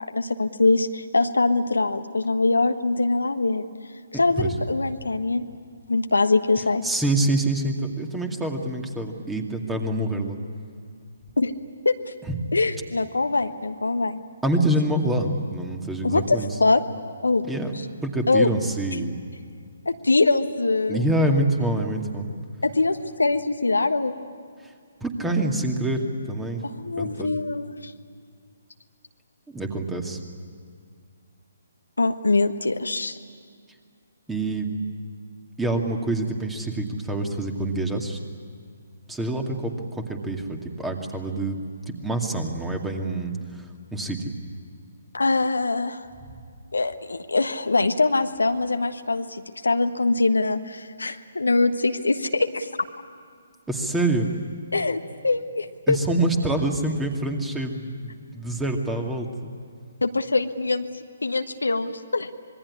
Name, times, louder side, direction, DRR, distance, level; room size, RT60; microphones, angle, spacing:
voice 1, 0.1-3.6 4.1-5.5 5.9-6.8 11.4-11.5 11.8-12.0 12.5-14.2 16.0-16.8 17.2-17.4 18.3-18.5 19.8-21.3 22.6-24.1 26.6-27.9 32.0-33.2 45.1-46.0 46.7-52.7 54.7-56.0 60.0-60.8 61.2-62.3, left 3 dB, 75° left, 7 dB, 1.4 m, -23 dB
voice 2, 6.8-10.4 12.3-12.4 14.4-16.5 17.5-17.7 18.0-19.2 20.9-22.3 24.6-24.7 25.0-26.0 26.3-26.6 27.0-27.4 29.5-30.2 34.3-34.7 35.6-38.2 39.1-41.6 41.9-44.2 53.7-54.3 55.9-59.5, right 1 dB, 5° right, 4 dB, 2.3 m, -26 dB
26.0 x 21.5 x 9.8 m, 2.2 s
figure-of-eight pair, 135°, 0 cm